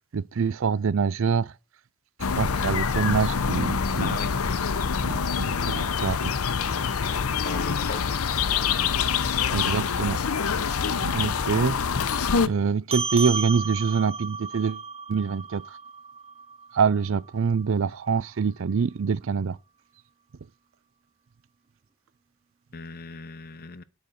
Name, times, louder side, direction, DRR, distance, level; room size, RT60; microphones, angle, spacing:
voice 1, 0.1-1.5 2.2-4.2 5.0-6.3 9.5-10.2 11.0-11.8 12.1-14.8 15.1-15.6 16.7-19.6, right 6 dB, 60° right, 0.5 m, -25 dB
sound 1, 2.2-12.5, left 6 dB, 80° left, 0.7 m, -25 dB
voice 2, 4.0-4.3 7.4-8.1 8.5-8.7 22.7-23.8, left 4 dB, 45° left, 0.7 m, -37 dB
sound 2, 12.9-17.7, right 4 dB, 25° right, 0.7 m, -34 dB
10.0 x 5.3 x 6.5 m
head